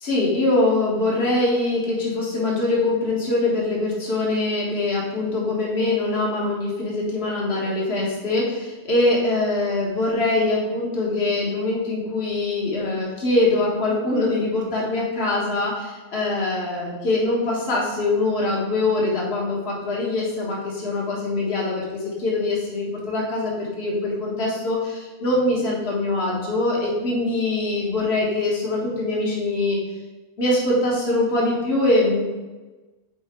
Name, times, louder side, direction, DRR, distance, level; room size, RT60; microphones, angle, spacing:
voice 1, 0.0-29.8 30.4-32.2, left 2 dB, 55° left, -4 dB, 1.7 m, -23 dB
5.6 x 4.4 x 4.4 m, 1.2 s
omnidirectional pair, 1.3 m